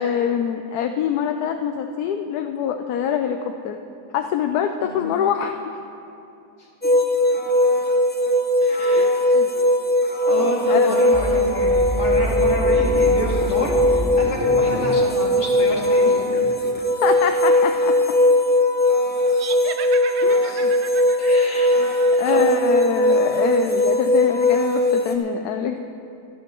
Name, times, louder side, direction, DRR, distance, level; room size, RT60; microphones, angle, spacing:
voice 1, 0.0-3.8 4.1-5.8 9.0-9.5 10.4-11.0 17.0-18.0 20.2-20.7 21.8-25.8, left 8 dB, 80° left, 6 dB, 1.1 m, -25 dB
sound 1, 6.8-25.2, left 1 dB, 10° left, 0.5 m, -19 dB
voice 2, 8.6-9.3 9.5-9.7 10.2-16.5 21.2-21.8 22.2-22.8 23.8-24.0, equal, 45° left, -5 dB, 2.6 m, -29 dB
sound 2, 11.1-16.8, right 1 dB, 10° right, 1.0 m, -29 dB
sound 3, 19.3-22.7, right 7 dB, 60° right, 0.7 m, -36 dB
25.5 x 10.0 x 3.0 m, 2.7 s
omnidirectional pair, 1.7 m